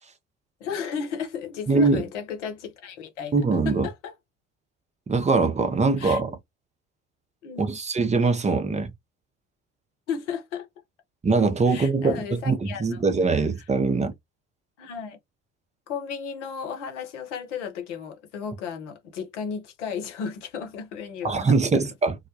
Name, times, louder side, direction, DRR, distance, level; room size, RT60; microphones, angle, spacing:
voice 1, 0.6-3.4 3.6-4.1 6.0-6.2 7.4-7.8 10.1-10.7 11.7-13.0 13.3-13.4 14.8-15.2 15.9-21.8, left 7 dB, 75° left, 0.8 m, -34 dB
voice 2, 1.7-2.0 3.3-3.9 5.1-6.4 7.6-8.9 11.2-14.1 21.2-22.2, right 4 dB, 20° right, 0.6 m, -22 dB
2.1 x 2.1 x 2.7 m
figure-of-eight pair, 55°, 36 cm